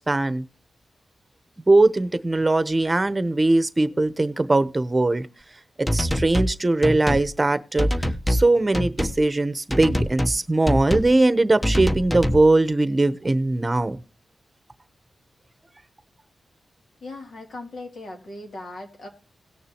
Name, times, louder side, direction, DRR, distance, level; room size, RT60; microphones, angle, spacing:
voice 1, 0.1-0.4 1.7-5.3 5.8-7.9 8.3-14.0, right 2 dB, 25° right, 1.0 m, -20 dB
sound 1, 5.9-6.6 6.8-7.3 7.8-8.5 8.7-9.2 9.7-10.4 10.7-11.1 11.6-12.5, equal, 15° left, 1.1 m, -24 dB
voice 2, 17.0-19.1, left 2 dB, 75° left, 3.0 m, -38 dB
18.0 x 6.7 x 3.0 m
cardioid pair, 65°, 0 cm